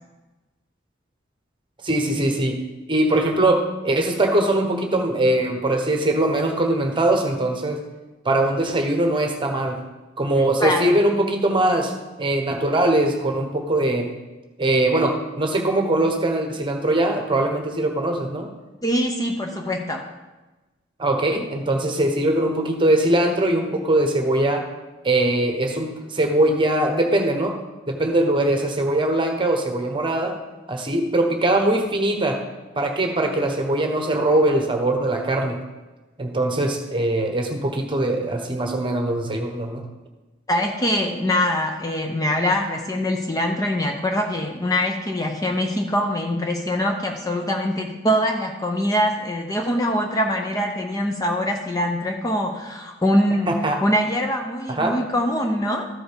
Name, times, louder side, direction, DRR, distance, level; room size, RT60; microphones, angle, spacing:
voice 1, 1.8-2.6 2.9-7.8 8.2-9.8 10.2-11.9 12.2-14.1 14.6-18.5 21.0-24.6 25.0-27.5 27.9-30.3 30.7-32.4 32.7-35.6 36.2-39.8 53.5-53.8 54.7-54.9, right 1 dB, 25° right, 4 dB, 1.2 m, -21 dB
voice 2, 10.6-11.0 18.8-20.0 40.5-55.9, equal, 20° left, 3 dB, 0.7 m, -23 dB
13.5 x 5.1 x 5.2 m, 1.1 s
head